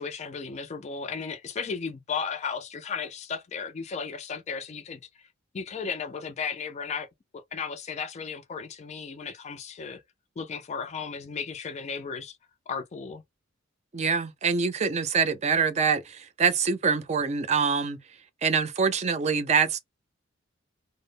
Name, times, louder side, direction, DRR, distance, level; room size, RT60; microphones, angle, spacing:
voice 1, 0.0-5.0 5.5-7.1 7.3-10.0 10.4-12.4 12.7-13.2, left 6 dB, 35° left, 0.3 m, -35 dB
voice 2, 13.9-18.0 18.4-19.8, right 5 dB, 35° right, 0.4 m, -25 dB
2.0 x 2.0 x 3.2 m
head